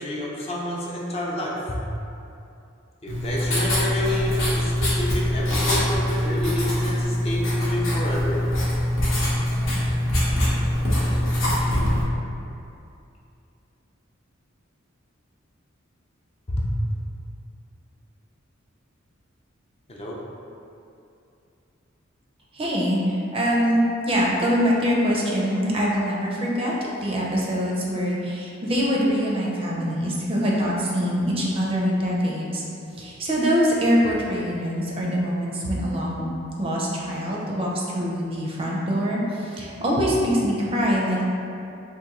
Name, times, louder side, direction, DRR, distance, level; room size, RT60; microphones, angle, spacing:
voice 1, 0.0-1.8 3.0-8.4 16.5-16.7 19.9-20.2, left 1 dB, 30° left, -4 dB, 0.4 m, -29 dB
Writing, 3.1-12.0, left 1 dB, 80° left, 0.9 m, -23 dB
voice 2, 22.5-26.7 27.0-32.6 33.0-36.3 36.6-41.3, equal, 30° right, -4 dB, 0.4 m, -24 dB
2.9 x 2.5 x 3.6 m, 2.6 s
head